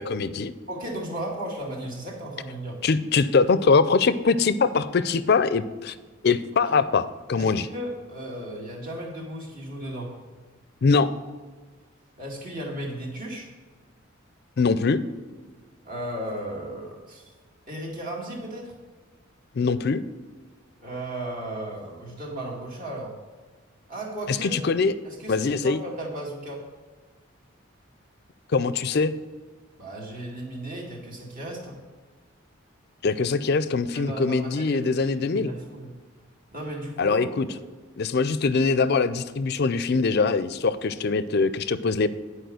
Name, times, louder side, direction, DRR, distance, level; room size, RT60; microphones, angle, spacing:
voice 1, 0.0-0.5 2.8-5.9 6.2-7.7 10.8-11.1 14.6-15.0 19.6-20.0 24.3-24.9 25.3-25.8 28.5-29.1 33.0-35.5 37.0-37.5 38.0-42.1, left 4 dB, 50° left, 14 dB, 0.4 m, -22 dB
voice 2, 0.7-2.8 6.7-6.8 7.4-10.2 12.2-13.5 15.8-17.3 17.7-18.8 20.8-23.2 23.9-24.6 25.0-26.6 29.8-31.8 33.9-35.9 36.5-37.2, right 1 dB, 40° right, -2 dB, 2.2 m, -35 dB
10.5 x 4.8 x 6.3 m, 1.4 s
head